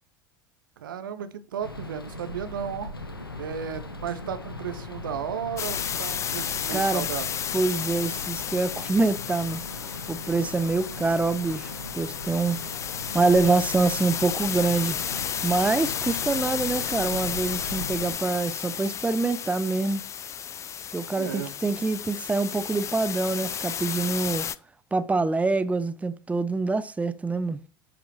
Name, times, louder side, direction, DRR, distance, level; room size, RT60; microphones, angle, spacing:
voice 1, 0.8-2.9 3.4-7.3 21.1-21.8, right 8 dB, 70° right, 1.0 m, -34 dB
sound 1, 1.6-18.2, left 2 dB, 85° left, 1.0 m, -39 dB
sound 2, 5.6-24.6, left 8 dB, 25° left, 0.5 m, -33 dB
voice 2, 6.7-7.1 7.5-9.6 10.1-11.7 11.9-12.6 13.1-15.0 15.4-20.0 20.9-24.5 24.9-27.6, right 3 dB, 10° right, 0.7 m, -25 dB
10.5 x 5.0 x 4.6 m
figure-of-eight pair, 75°, 12 cm